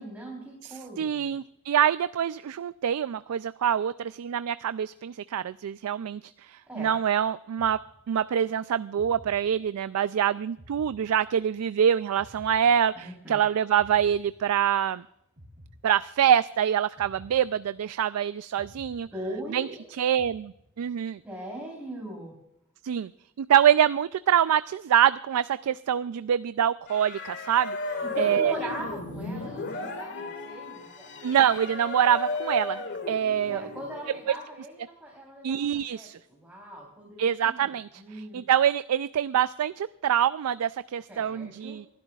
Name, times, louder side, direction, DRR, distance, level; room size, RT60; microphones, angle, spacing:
voice 1, 0.0-1.4 6.7-6.9 12.9-13.4 19.1-19.8 21.2-22.4 28.1-31.3 33.5-37.7 38.0-38.4 41.1-41.8, right 1 dB, 5° right, -3 dB, 3.5 m, -40 dB
voice 2, 0.6-7.8 8.1-15.0 15.8-19.1 19.5-19.7 20.0-21.2 22.8-23.1 23.4-27.8 28.2-28.5 31.2-33.7 35.4-36.2 37.2-41.9, right 9 dB, 90° right, 15 dB, 0.4 m, -25 dB
sound 1, 7.6-8.4 9.0-10.0 10.6-11.7 12.2-13.3 13.8-14.9 15.4-16.4 17.0-18.1 18.6-19.7 20.2-21.0, equal, 40° right, 2.8 m, -53 dB
sound 2, 26.9-34.2, left 3 dB, 55° left, 1.9 m, -35 dB
26.0 x 12.0 x 2.4 m, 0.79 s
head